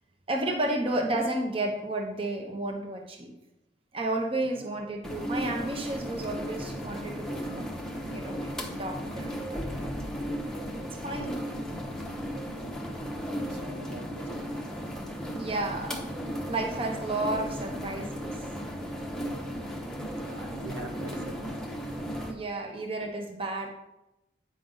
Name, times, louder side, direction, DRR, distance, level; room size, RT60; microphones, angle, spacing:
voice 1, 0.3-3.3 3.9-7.8 8.1-8.5 8.8-9.9 11.0-11.4 15.4-16.1 16.4-18.4 22.2-23.7, right 2 dB, 30° right, 2 dB, 0.9 m, -32 dB
sound 1, 5.0-22.3, equal, 5° left, 0.8 m, -35 dB
voice 2, 11.1-11.8 13.4-14.6 16.1-16.2 20.1-21.7, right 2 dB, 75° right, 3 dB, 1.0 m, -44 dB
9.3 x 5.3 x 3.9 m, 0.91 s
head